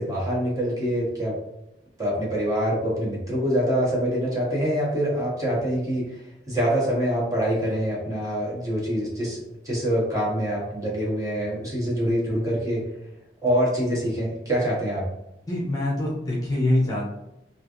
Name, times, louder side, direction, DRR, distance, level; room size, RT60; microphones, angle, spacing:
voice 1, 0.0-1.3 2.0-6.2 6.5-12.8 13.4-15.0, equal, 20° right, -5 dB, 0.9 m, -25 dB
voice 2, 15.5-17.0, left 1 dB, 20° left, -4 dB, 0.6 m, -24 dB
3.2 x 2.4 x 2.4 m, 0.88 s
head